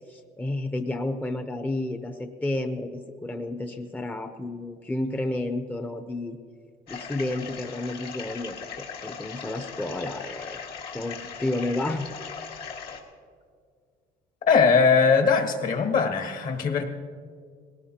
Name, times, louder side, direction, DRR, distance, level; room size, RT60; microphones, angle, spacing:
voice 1, 0.1-6.4 6.9-8.6 9.0-10.6 10.9-12.1, left 2 dB, 10° left, 6 dB, 0.7 m, -31 dB
sound 1, 6.9-13.0, left 6 dB, 70° left, 1.9 m, -39 dB
voice 2, 14.5-16.8, left 5 dB, 50° left, 5 dB, 1.4 m, -20 dB
20.5 x 18.0 x 2.9 m, 2.1 s
cardioid pair, 110°, 17 cm